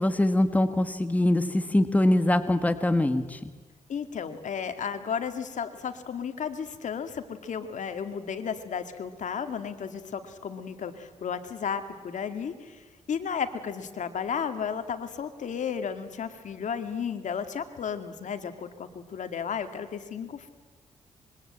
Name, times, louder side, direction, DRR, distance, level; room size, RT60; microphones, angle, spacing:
voice 1, 0.0-3.5, left 1 dB, 10° left, 9 dB, 1.6 m, -23 dB
voice 2, 3.9-20.5, left 7 dB, 65° left, 9 dB, 2.2 m, -33 dB
25.5 x 23.0 x 8.8 m, 1.3 s
cardioid pair, 90°, 14 cm